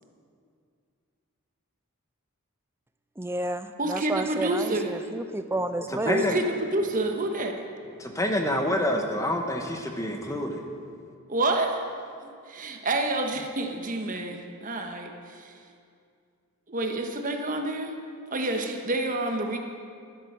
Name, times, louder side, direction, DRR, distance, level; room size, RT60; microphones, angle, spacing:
voice 1, 3.2-6.2, right 1 dB, 10° right, 9 dB, 0.5 m, -31 dB
voice 2, 3.8-4.9 6.0-7.6 11.3-11.8 12.2-15.5 16.7-17.9 18.3-19.6, right 2 dB, 35° right, 3 dB, 1.2 m, -28 dB
voice 3, 6.1-6.4 8.0-10.6, left 1 dB, 15° left, 3 dB, 1.0 m, -27 dB
11.5 x 11.0 x 6.7 m, 2.3 s
head